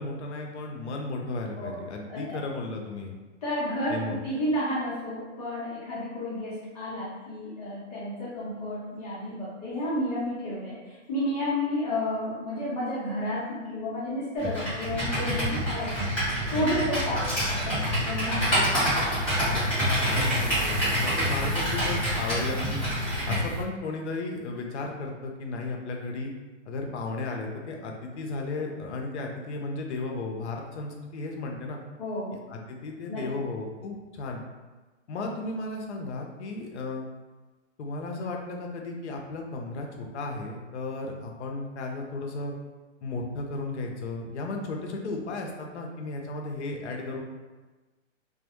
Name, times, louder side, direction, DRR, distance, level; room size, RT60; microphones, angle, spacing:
voice 1, 0.0-3.2 3.9-4.2 18.6-18.8 19.4-22.8 23.2-26.3 26.7-31.8 32.5-34.4 35.1-37.0 37.8-42.5 43.0-47.2, left 3 dB, 65° left, 1 dB, 0.6 m, -34 dB
voice 2, 2.1-2.4 3.4-18.5 32.0-32.4 33.1-33.2, left 1 dB, 30° left, -9 dB, 0.8 m, -31 dB
Computer keyboard, 14.4-23.4, equal, 5° left, 0.6 m, -27 dB
sound 1, 14.8-23.6, right 3 dB, 85° right, 0.5 m, -38 dB
2.2 x 2.1 x 2.9 m, 1.2 s
hypercardioid pair, 155°, 38 cm